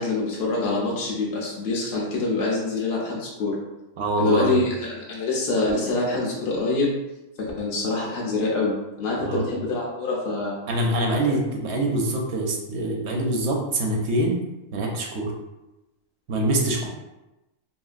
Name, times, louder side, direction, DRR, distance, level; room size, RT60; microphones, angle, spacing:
voice 1, 0.0-3.5 4.2-6.9 7.4-10.5 11.2-11.4, left 3 dB, 60° left, -4 dB, 0.6 m, -25 dB
voice 2, 4.0-4.6 9.2-9.5 10.7-14.4 14.7-15.3 16.3-16.9, right 1 dB, 65° right, 0 dB, 0.7 m, -24 dB
2.8 x 2.6 x 2.4 m, 1.0 s
omnidirectional pair, 1.5 m